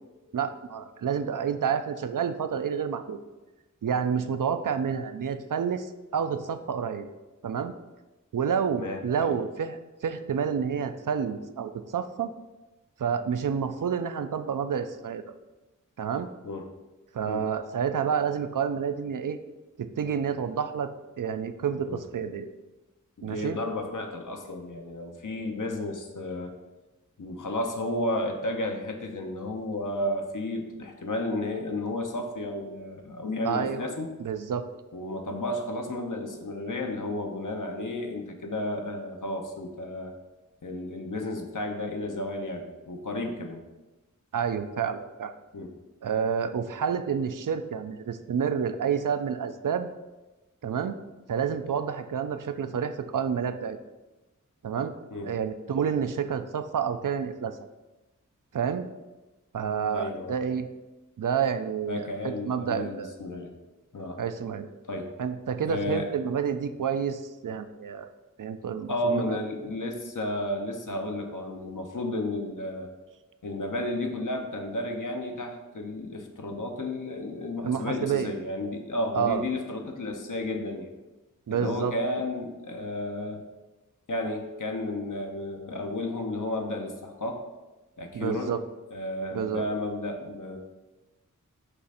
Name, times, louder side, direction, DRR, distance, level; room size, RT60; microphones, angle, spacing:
voice 1, 0.3-3.2 3.8-7.1 7.4-7.7 8.3-12.3 13.0-15.2 16.0-16.3 17.1-19.4 19.8-20.9 21.2-22.5 23.2-23.6 33.4-33.9 34.2-34.7 44.3-45.3 46.0-49.9 50.6-51.0 51.3-53.8 54.6-54.9 55.2-57.6 58.5-58.9 59.5-60.7 61.2-63.1 64.2-64.7 65.2-68.1 68.4-69.4 77.6-78.3 79.1-79.4 81.5-81.9 88.1-88.6 89.3-89.6, right 7 dB, 75° right, 9 dB, 0.5 m, -29 dB
voice 2, 8.8-9.4 16.4-16.7 17.2-17.4 21.8-22.0 23.2-26.6 27.2-34.1 34.9-40.1 40.6-43.6 45.5-45.7 55.1-55.3 59.9-60.4 61.9-63.5 63.9-64.2 64.8-65.2 65.7-66.1 68.9-72.9 73.4-80.9 81.5-83.4 84.1-87.4 88.0-88.5 88.9-90.6, left 1 dB, 70° left, 3 dB, 0.9 m, -32 dB
6.7 x 2.5 x 5.6 m, 1.1 s
wide cardioid pair, 55°, 32 cm